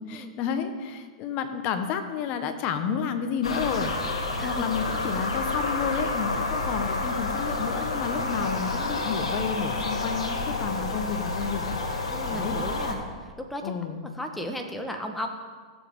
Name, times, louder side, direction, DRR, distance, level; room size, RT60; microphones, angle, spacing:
voice 1, 0.1-3.9 4.4-12.6 13.6-14.0, left 7 dB, 40° left, 8 dB, 1.2 m, -31 dB
sound 1, 3.4-12.9, left 2 dB, 85° left, 1.7 m, -29 dB
voice 2, 12.1-13.7 14.1-15.3, equal, 5° left, 3 dB, 1.3 m, -35 dB
16.5 x 7.4 x 3.7 m, 1.6 s
hypercardioid pair, 115°, 3 cm